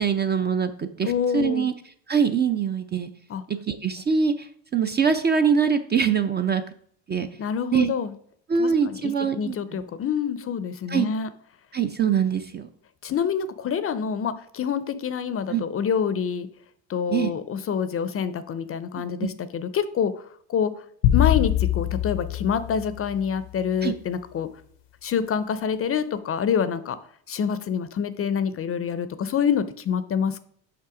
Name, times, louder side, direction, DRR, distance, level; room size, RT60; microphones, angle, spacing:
voice 1, 0.0-1.7 2.1-3.1 3.5-6.6 7.1-7.3 7.7-7.9 8.5-9.8 10.9-11.1 11.7-12.7 15.5-15.6 17.1-17.3 19.0-19.3 23.8-23.9, right 6 dB, 25° right, 9 dB, 0.4 m, -23 dB
voice 2, 1.0-1.7 3.3-3.4 7.4-8.1 8.6-11.3 13.0-16.5 16.9-20.1 20.5-20.7 21.1-24.5 25.0-27.0 27.3-30.4, left 7 dB, 30° left, 14 dB, 0.5 m, -26 dB
sound 1, 21.0-23.5, left 12 dB, 90° left, 0.8 m, -23 dB
5.9 x 5.5 x 4.8 m, 0.62 s
supercardioid pair, 100°, 44 cm